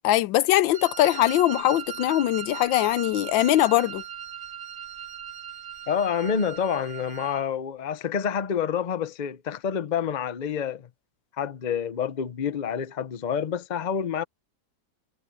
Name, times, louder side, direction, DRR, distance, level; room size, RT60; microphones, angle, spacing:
voice 1, 0.0-4.0, left 14 dB, 80° left, 1.3 m, -21 dB
Wind instrument woodwind instrument, 0.7-7.5, right 10 dB, 50° right, 1.3 m, -39 dB
voice 2, 5.9-10.9 11.4-14.2, left 7 dB, 55° left, 0.4 m, -28 dB
omnidirectional pair, 2.1 m